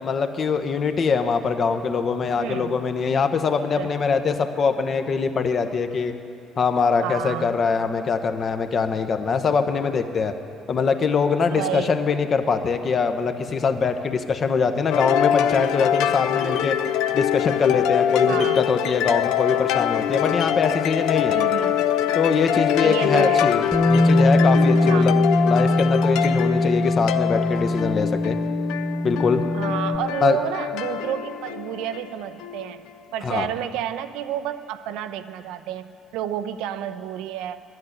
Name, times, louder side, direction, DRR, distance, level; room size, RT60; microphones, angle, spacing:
voice 1, 0.0-6.1 6.6-10.3 10.7-16.8 17.1-21.4 22.1-23.6 23.9-28.4 29.0-29.5 30.2-30.4 33.2-33.5, left 5 dB, 45° left, 8 dB, 0.8 m, -23 dB
voice 2, 2.4-2.8 3.6-3.9 7.0-7.5 11.5-12.0 18.3-18.6 21.3-22.0 22.8-23.5 24.9-25.1 29.5-32.9 33.1-37.6, right 11 dB, 65° right, 12 dB, 0.4 m, -30 dB
sound 1, 14.9-32.8, left 10 dB, 65° left, 0.4 m, -24 dB
Bass guitar, 23.7-30.0, left 1 dB, 10° left, 1.4 m, -21 dB
10.5 x 7.8 x 9.0 m, 2.5 s
figure-of-eight pair, 50°, 0 cm